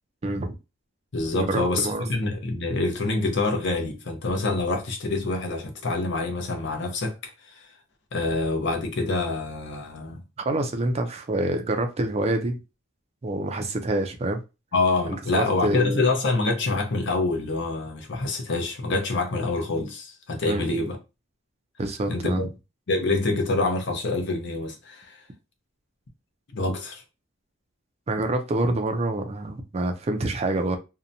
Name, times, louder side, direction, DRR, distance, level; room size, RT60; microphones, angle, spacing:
voice 1, 0.2-0.5 1.3-2.1 10.4-12.6 13.2-14.4 15.1-16.1 20.5-20.9 21.8-22.5 28.1-30.8, right 2 dB, 30° right, 0.4 m, -27 dB
voice 2, 1.1-7.7 8.1-10.2 14.7-21.0 22.1-22.5 22.9-25.2 26.5-27.0, left 3 dB, 60° left, 0.6 m, -26 dB
2.7 x 2.1 x 2.5 m
head